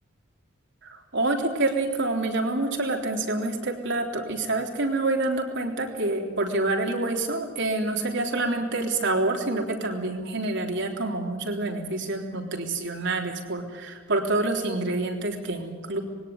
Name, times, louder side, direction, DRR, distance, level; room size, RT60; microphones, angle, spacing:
voice 1, 1.1-16.0, right 2 dB, 65° right, 1 dB, 3.6 m, -27 dB
21.5 x 17.0 x 9.6 m, 1.5 s
head